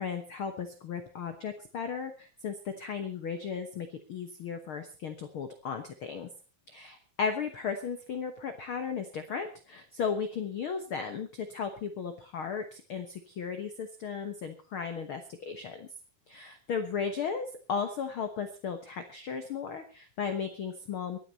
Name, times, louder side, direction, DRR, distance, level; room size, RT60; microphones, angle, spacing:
voice 1, 0.0-6.3 6.7-15.9 16.3-21.2, left 6 dB, 80° left, 7 dB, 1.2 m, -35 dB
24.5 x 9.6 x 4.1 m, 0.35 s
omnidirectional pair, 4.2 m